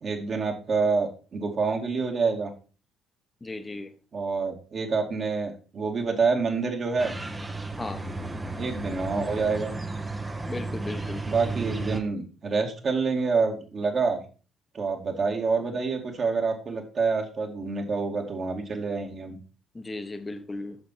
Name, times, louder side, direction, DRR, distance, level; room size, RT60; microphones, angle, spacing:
voice 1, 0.0-2.5 4.1-7.2 8.6-9.7 11.3-14.2 14.7-19.4, right 4 dB, 40° right, 2 dB, 2.3 m, -27 dB
voice 2, 3.4-3.9 7.8-8.0 10.5-11.2 19.7-20.8, left 2 dB, 20° left, 8 dB, 1.3 m, -35 dB
sound 1, 7.0-12.0, right 2 dB, 20° right, 1.2 m, -34 dB
8.1 x 6.9 x 4.5 m, 0.37 s
figure-of-eight pair, 50°, 0 cm